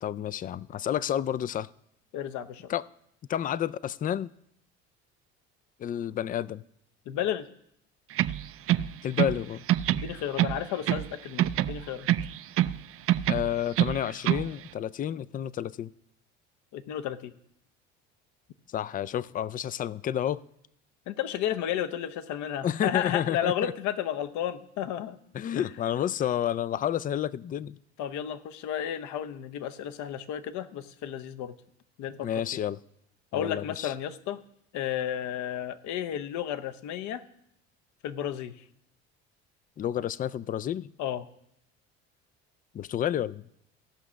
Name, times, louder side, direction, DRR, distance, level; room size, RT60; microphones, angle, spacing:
voice 1, 0.0-1.7 2.7-2.8 3.3-4.3 5.8-6.6 9.0-9.6 13.3-15.9 18.7-20.4 22.6-23.7 25.3-27.8 32.2-32.8 33.3-33.9 39.8-40.9 42.7-43.4, left 10 dB, 25° left, 18 dB, 0.4 m, -30 dB
voice 2, 2.1-2.7 7.1-7.5 9.9-12.1 16.7-17.3 21.1-25.2 25.5-25.7 28.0-31.5 32.0-32.6 33.3-34.4 34.7-37.2 38.0-38.6 41.0-41.3, left 10 dB, 60° left, 10 dB, 0.9 m, -32 dB
sound 1, 8.1-9.4 9.7-11.1 11.4-12.8 13.1-14.5, right 13 dB, 45° right, 0.5 m, -26 dB
16.0 x 5.8 x 6.2 m, 0.75 s
hypercardioid pair, 75°, 32 cm